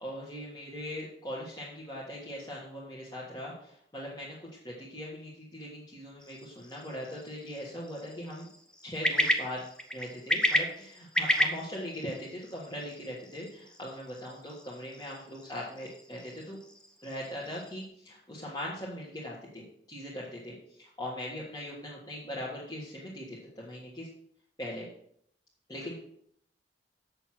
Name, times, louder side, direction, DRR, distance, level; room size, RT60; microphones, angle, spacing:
voice 1, 0.0-8.5 8.8-9.6 9.9-16.6 17.0-24.1 24.6-24.9 25.7-25.9, equal, 20° left, -7 dB, 1.7 m, -40 dB
sound 1, 6.2-17.9, equal, 5° left, 0.8 m, -34 dB
7.6 x 6.8 x 6.0 m, 0.69 s
head